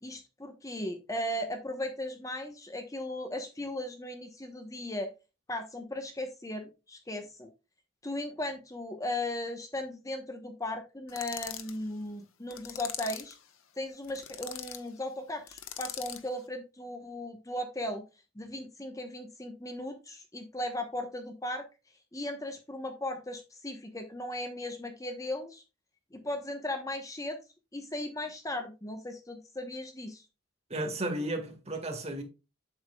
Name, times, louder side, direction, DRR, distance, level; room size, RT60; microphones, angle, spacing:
voice 1, 0.0-5.1 5.5-7.5 8.0-13.4 13.8-18.0 18.3-21.6 22.1-25.6 26.1-27.4 27.7-30.2, left 1 dB, 15° left, 1.0 m, -37 dB
sound 1, 11.1-11.8 12.5-13.4 14.0-14.8 15.5-16.3, left 11 dB, 85° left, 1.1 m, -41 dB
voice 2, 30.7-32.2, right 1 dB, 30° right, 1.8 m, -33 dB
8.3 x 7.2 x 2.3 m
head